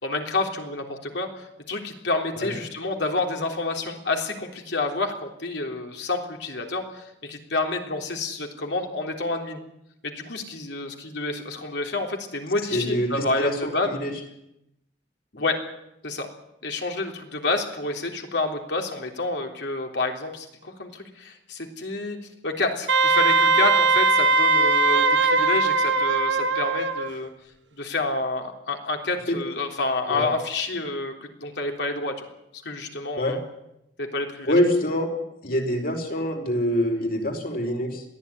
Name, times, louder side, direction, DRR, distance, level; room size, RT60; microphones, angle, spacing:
voice 1, 0.0-9.6 10.0-14.0 15.4-15.6 16.0-16.3 16.6-22.2 22.4-27.3 27.8-32.1 32.6-33.4 34.0-34.5, left 3 dB, 70° left, 3 dB, 3.6 m, -29 dB
voice 2, 12.7-14.1 29.3-29.4 30.1-30.3 33.2-33.4 34.5-35.1 35.4-38.0, equal, 55° left, 3 dB, 4.8 m, -25 dB
Wind instrument woodwind instrument, 22.9-27.1, right 3 dB, 80° right, 1.4 m, -20 dB
22.0 x 15.5 x 9.7 m, 0.82 s
head